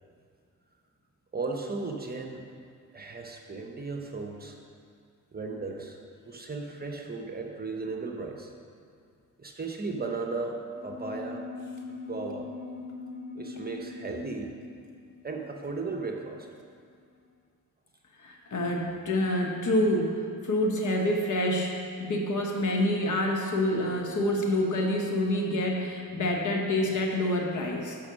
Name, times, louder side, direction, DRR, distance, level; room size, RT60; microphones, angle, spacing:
voice 1, 1.3-2.4 2.9-4.6 5.3-6.0 6.3-8.5 9.4-11.4 11.9-12.5 13.3-14.5 15.2-16.5, right 3 dB, 25° right, 2 dB, 0.9 m, -35 dB
sound 1, 10.7-16.6, left 3 dB, ahead, 1.9 m, -42 dB
voice 2, 18.2-20.1 20.4-28.0, left 1 dB, 60° left, 1 dB, 1.3 m, -27 dB
6.7 x 5.4 x 6.2 m, 2.3 s
cardioid pair, 80°, 34 cm